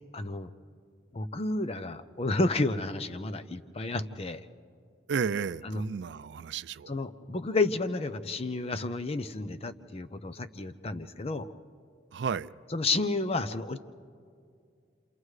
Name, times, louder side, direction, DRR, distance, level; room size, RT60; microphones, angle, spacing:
voice 1, 0.1-0.5 1.1-4.4 5.6-5.8 6.9-11.5 12.7-13.8, left 2 dB, 35° left, 0.6 m, -31 dB
voice 2, 5.1-6.9 12.1-12.5, right 6 dB, 80° right, 0.4 m, -32 dB
29.5 x 27.0 x 3.2 m
head